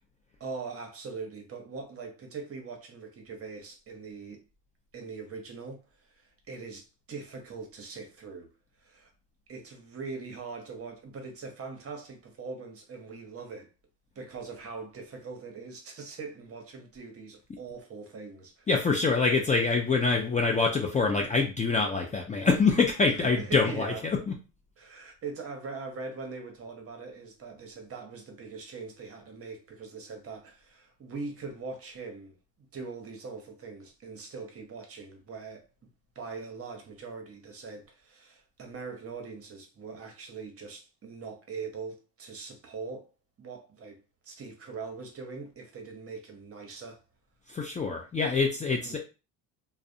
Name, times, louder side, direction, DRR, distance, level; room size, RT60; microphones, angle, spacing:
voice 1, 0.4-4.4 4.9-8.5 8.8-9.1 9.5-13.7 14.2-18.9 23.1-24.0 24.8-35.7 36.1-43.1 43.4-47.0 48.8-49.0, right 4 dB, 35° right, 0.8 m, -42 dB
voice 2, 18.7-23.9 24.3-24.4 47.5-49.0, left 4 dB, 20° left, 0.4 m, -25 dB
2.3 x 2.1 x 2.6 m
supercardioid pair, 75°, 40 cm